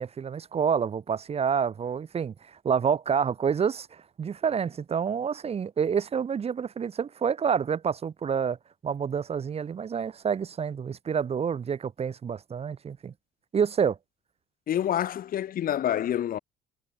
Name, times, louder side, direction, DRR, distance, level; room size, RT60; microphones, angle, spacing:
voice 1, 0.0-8.6 8.8-13.1 13.5-14.0, right 7 dB, 35° right, 1.7 m, -28 dB
voice 2, 14.7-16.4, left 11 dB, 55° left, 4.5 m, -27 dB
cardioid pair, 110°, 17 cm